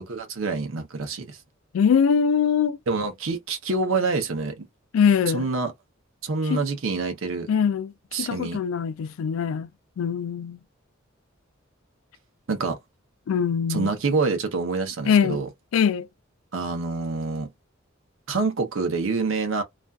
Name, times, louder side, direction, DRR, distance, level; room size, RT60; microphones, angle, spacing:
voice 1, 0.0-1.4 2.9-4.7 5.3-5.7 6.2-7.5 8.1-8.6 12.5-12.8 13.7-15.5 16.5-17.5 18.3-19.6, right 3 dB, 75° right, 0.6 m, -26 dB
voice 2, 1.7-2.8 4.9-5.5 6.5-6.6 7.5-9.7 10.0-10.6 13.3-13.9 15.1-15.4 15.7-16.1, left 7 dB, 85° left, 0.3 m, -22 dB
2.4 x 2.3 x 2.2 m
head